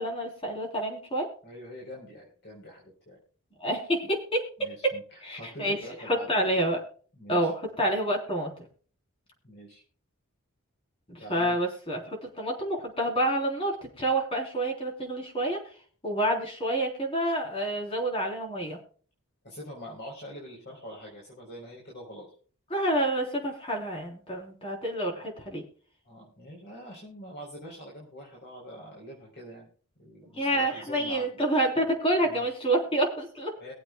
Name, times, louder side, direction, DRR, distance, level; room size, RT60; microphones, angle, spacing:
voice 1, 0.0-1.3 3.6-4.9 5.2-5.8 6.1-6.8 7.3-8.5 11.1-15.6 16.0-18.8 22.7-25.6 30.4-33.5, right 1 dB, 25° left, 0 dB, 3.8 m, -28 dB
voice 2, 1.4-3.2 4.6-6.3 7.2-7.5 9.4-9.8 11.2-11.6 17.2-17.3 19.4-22.3 26.0-29.7 30.0-31.4 32.2-32.5 33.6-33.7, equal, 50° left, -2 dB, 3.9 m, -44 dB
23.5 x 8.0 x 2.3 m, 0.42 s
head